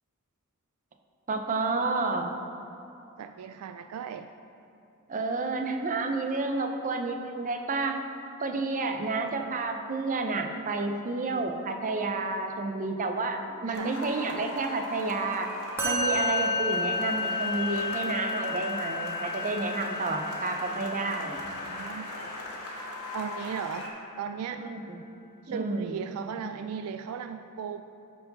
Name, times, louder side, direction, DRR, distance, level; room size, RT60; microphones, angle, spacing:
voice 1, 1.3-2.3 5.1-8.0 8.4-15.5 15.8-21.4 24.6-25.0 25.5-26.0, right 3 dB, 35° right, 4 dB, 0.6 m, -30 dB
voice 2, 3.2-4.3 13.7-14.0 21.6-22.3 23.1-23.9 24.2-24.6 25.4-27.8, right 7 dB, 75° right, 8 dB, 0.3 m, -36 dB
sound 1, 13.7-23.9, left 1 dB, 80° left, 1.3 m, -39 dB
Musical instrument, 15.8-23.1, left 2 dB, 10° right, 1.6 m, -32 dB
13.5 x 4.6 x 4.0 m, 2.8 s
head